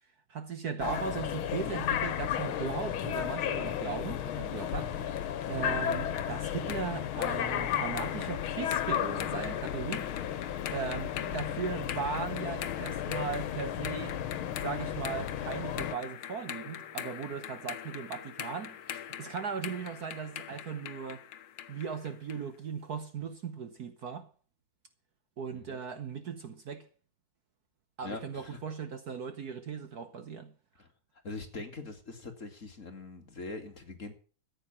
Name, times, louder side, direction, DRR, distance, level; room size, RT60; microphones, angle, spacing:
voice 1, 0.3-10.4 10.7-14.2 14.6-21.2 21.7-24.3 25.4-26.9 28.0-30.5, right 6 dB, 55° right, 1.4 m, -38 dB
sound 1, 0.8-15.9, left 10 dB, 90° left, 1.8 m, -34 dB
sound 2, 4.7-22.5, left 10 dB, 70° left, 1.5 m, -43 dB
voice 2, 28.0-28.6 30.8-30.9 31.2-34.2, left 3 dB, 40° left, 2.2 m, -42 dB
14.0 x 8.9 x 7.1 m
omnidirectional pair, 2.3 m